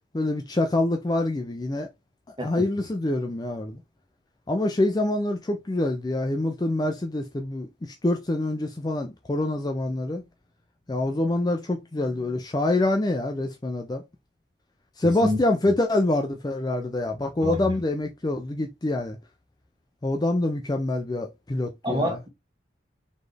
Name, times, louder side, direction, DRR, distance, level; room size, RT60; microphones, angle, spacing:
voice 1, 0.1-1.9 2.3-3.8 4.5-10.2 10.9-14.0 15.0-19.2 20.0-22.2, left 2 dB, 20° left, 0.4 m, -26 dB
voice 2, 17.4-17.7 21.8-22.3, left 1 dB, 25° right, 1.4 m, -27 dB
4.1 x 3.2 x 3.3 m
head